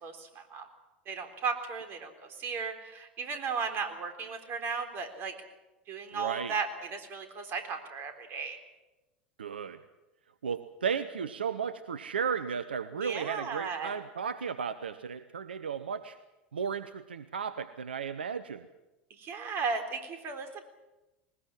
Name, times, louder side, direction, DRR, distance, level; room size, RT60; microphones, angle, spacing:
voice 1, 0.0-0.6 1.1-2.1 2.4-5.3 5.9-8.6 13.0-14.0 19.2-20.6, right 5 dB, 45° right, 6 dB, 3.8 m, -35 dB
voice 2, 6.1-6.6 9.4-9.8 10.4-16.2 16.5-18.7, right 6 dB, 80° right, 13 dB, 0.8 m, -34 dB
20.5 x 20.0 x 7.6 m, 1.0 s
figure-of-eight pair, 80°, 5 cm